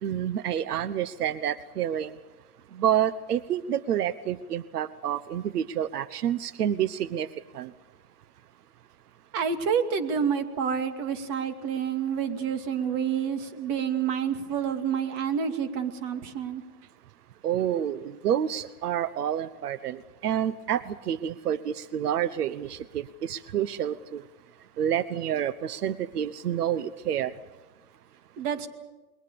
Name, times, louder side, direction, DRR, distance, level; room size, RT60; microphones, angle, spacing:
voice 1, 0.0-2.2 2.7-7.3 7.5-7.7 17.4-24.2 24.8-27.3, right 10 dB, 85° right, 16 dB, 1.1 m, -28 dB
voice 2, 9.3-16.6 28.4-28.7, right 7 dB, 40° right, 7 dB, 2.5 m, -28 dB
29.0 x 22.5 x 6.9 m, 1.1 s
hypercardioid pair, 145°, 45 cm